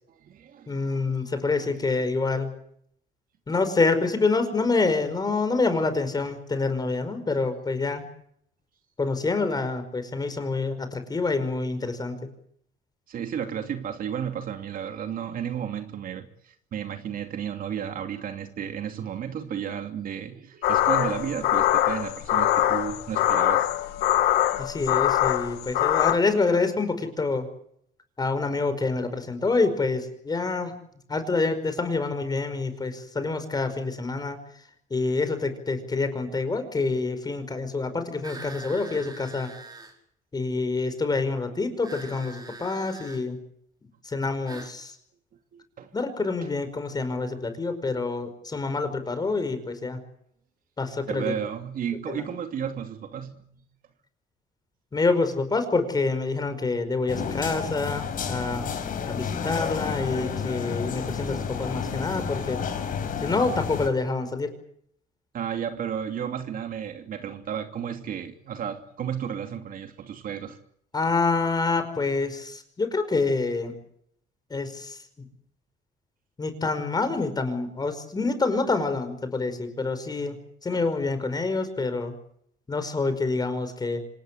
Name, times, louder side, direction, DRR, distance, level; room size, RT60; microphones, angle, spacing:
voice 1, 0.1-1.5 13.1-23.7 45.5-45.9 46.4-46.5 51.1-53.6 65.3-70.6 80.7-80.8, right 8 dB, 55° right, 2.8 m, -33 dB
voice 2, 0.7-2.5 3.5-8.1 9.0-12.2 24.6-27.5 28.2-30.7 31.1-34.4 34.9-39.5 40.3-43.4 44.0-45.0 45.9-50.0 50.8-51.3 52.1-52.2 54.9-58.7 59.1-62.6 63.2-64.5 70.9-73.8 74.5-75.0 76.4-82.1 82.7-84.0, left 3 dB, 25° left, 5.2 m, -27 dB
sound 1, 20.6-26.1, left 13 dB, 85° left, 2.0 m, -23 dB
sound 2, 38.2-40.0 41.8-43.2 44.5-44.8, right 3 dB, 25° right, 5.2 m, -43 dB
sound 3, 57.1-63.9, left 6 dB, 55° left, 4.8 m, -31 dB
26.5 x 19.0 x 8.4 m
cardioid pair, 110°, 17 cm